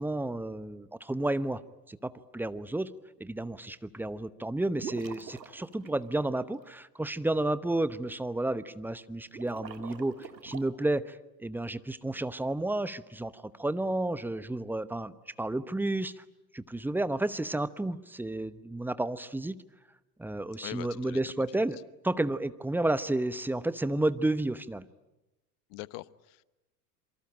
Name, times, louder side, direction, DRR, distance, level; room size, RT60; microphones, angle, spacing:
voice 1, 0.0-1.6 1.9-2.9 3.2-16.2 16.5-19.6 20.2-21.8 22.0-24.8, right 2 dB, 5° right, 15 dB, 0.9 m, -31 dB
sound 1, 4.8-6.6 9.2-10.6, right 6 dB, 90° right, 2.1 m, -44 dB
voice 2, 20.6-21.2 25.7-26.4, left 20 dB, 50° left, 18 dB, 1.1 m, -42 dB
27.0 x 24.0 x 8.8 m, 0.99 s
hypercardioid pair, 85°, 49 cm